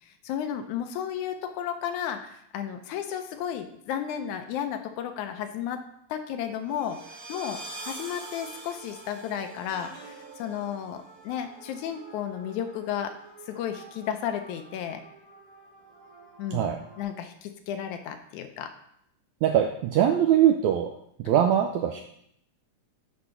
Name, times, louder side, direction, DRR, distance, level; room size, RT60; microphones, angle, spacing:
voice 1, 0.0-13.2 13.5-15.0 16.4-18.7, left 9 dB, 75° left, 7 dB, 1.9 m, -33 dB
sound 1, 6.5-17.0, right 3 dB, 60° right, 2.9 m, -46 dB
voice 2, 19.4-20.9 21.2-22.0, right 10 dB, 85° right, 3 dB, 1.6 m, -22 dB
7.9 x 4.2 x 5.6 m, 0.72 s
omnidirectional pair, 3.8 m